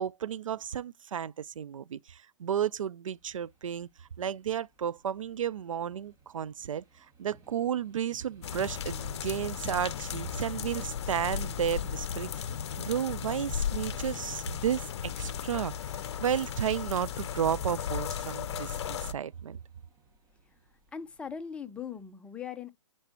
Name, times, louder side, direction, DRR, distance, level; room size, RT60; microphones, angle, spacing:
voice 1, 0.0-12.5 12.8-19.6, right 9 dB, 80° right, 0.4 m, -33 dB
sound 1, 3.1-22.1, right 4 dB, 20° right, 1.6 m, -60 dB
sound 2, 8.4-19.1, left 8 dB, 55° left, 0.6 m, -35 dB
voice 2, 20.4-22.7, left 7 dB, 5° left, 0.6 m, -41 dB
10.5 x 4.5 x 2.8 m
hypercardioid pair, 135°, 17 cm